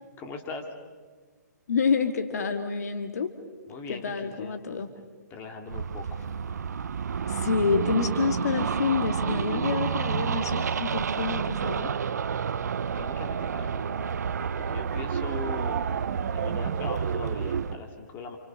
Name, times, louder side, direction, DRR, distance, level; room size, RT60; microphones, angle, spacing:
voice 1, 0.2-0.7 3.7-4.6 5.3-6.3 12.5-14.2 14.6-15.8 16.3-18.4, left 4 dB, 20° left, 3 dB, 3.0 m, -40 dB
voice 2, 1.7-3.3 3.9-4.9 7.3-11.9, left 5 dB, 60° left, 6 dB, 2.1 m, -28 dB
sound 1, 5.7-17.8, right 6 dB, 65° right, 0.8 m, -30 dB
sound 2, 11.2-17.8, right 9 dB, 50° right, 1.1 m, -36 dB
29.0 x 28.0 x 6.5 m, 1.4 s
figure-of-eight pair, 130°, 10 cm